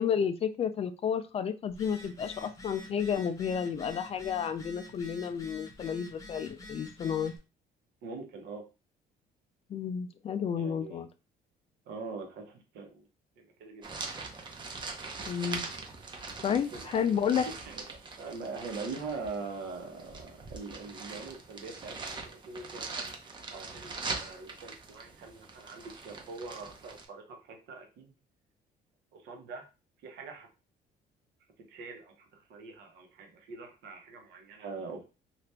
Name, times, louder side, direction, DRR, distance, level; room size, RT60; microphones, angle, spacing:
voice 1, 0.0-7.3 9.7-11.1 15.3-15.7 16.4-17.5, left 7 dB, 35° left, 10 dB, 0.4 m, -31 dB
Telephone, 1.7-7.4, left 1 dB, 20° left, 0.8 m, -48 dB
voice 2, 8.0-8.6 10.6-11.0 11.9-13.1 13.4-14.2 16.5-17.1 17.4-17.9 18.2-23.1 23.5-28.1 29.1-29.7 30.0-30.5 31.6-35.0, right 4 dB, 80° right, 3 dB, 1.0 m, -43 dB
sound 1, 13.8-27.0, right 3 dB, 25° right, 0.6 m, -42 dB
2.8 x 2.5 x 3.3 m, 0.31 s
cardioid pair, 110°, 17 cm